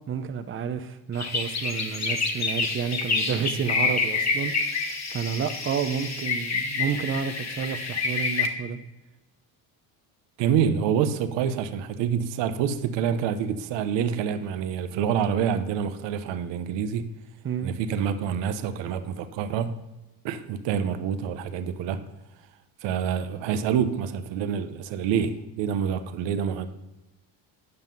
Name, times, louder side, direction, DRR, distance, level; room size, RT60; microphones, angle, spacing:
voice 1, 0.1-4.5 4.9-8.8 17.4-17.7, right 7 dB, 25° right, 9 dB, 0.7 m, -30 dB
sound 1, 1.1-8.5, left 4 dB, 35° left, 1.4 m, -28 dB
voice 2, 10.4-17.1 17.6-19.8 20.2-22.0 22.8-26.7, right 8 dB, 65° right, 9 dB, 0.9 m, -27 dB
9.8 x 5.6 x 5.4 m, 1.0 s
cardioid pair, 110°, 47 cm